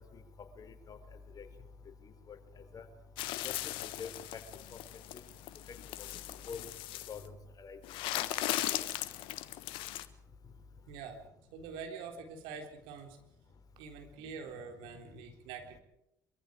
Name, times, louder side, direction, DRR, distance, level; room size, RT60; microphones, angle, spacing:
voice 1, 0.6-1.0 1.4-1.5 2.3-2.4 2.7-2.8 3.4-3.5 3.8-4.4 4.7-4.8 6.5-6.6 7.1-7.3 7.6-7.8, left 6 dB, 40° left, 7 dB, 4.0 m, -44 dB
sound 1, 3.2-7.2 7.8-10.1, left 15 dB, 65° left, 1.2 m, -38 dB
voice 2, 10.9-11.2 11.5-13.2 13.8-15.8, right 6 dB, 65° right, 4 dB, 3.6 m, -45 dB
25.0 x 23.5 x 5.1 m, 0.81 s
figure-of-eight pair, 55°, 9 cm